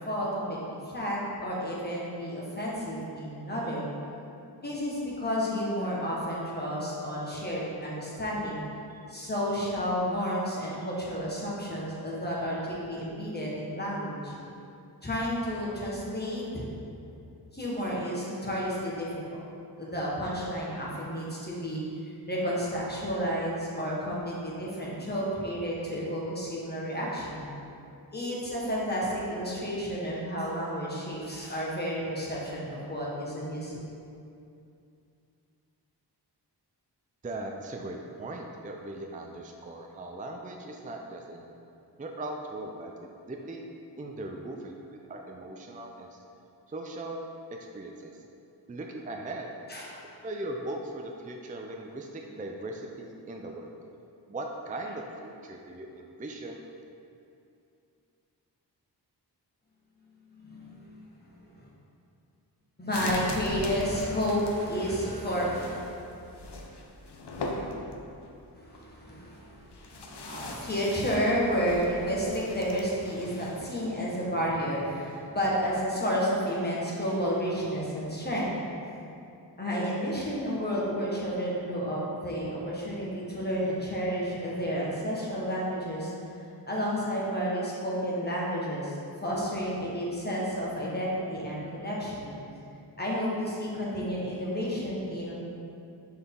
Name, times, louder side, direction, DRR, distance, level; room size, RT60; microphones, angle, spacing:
voice 1, 0.0-3.9 4.6-8.6 8.9-14.3 15.0-16.6 17.5-19.1 19.8-27.5 28.1-33.7 44.4-44.5 49.7-50.0 60.4-61.7 62.8-65.8 68.5-78.5 79.6-86.1 86.6-92.4 93.0-95.3, equal, 25° left, -6 dB, 1.4 m, -31 dB
voice 2, 37.2-41.5 42.0-42.9 43.3-43.6 44.0-46.2 46.7-48.1 48.7-49.5 50.2-53.7 54.3-56.6, right 2 dB, 20° right, 2 dB, 0.4 m, -39 dB
sound 1, 62.9-73.6, left 2 dB, 75° left, 0.7 m, -41 dB
6.6 x 4.5 x 3.8 m, 2.6 s
wide cardioid pair, 80°, 41 cm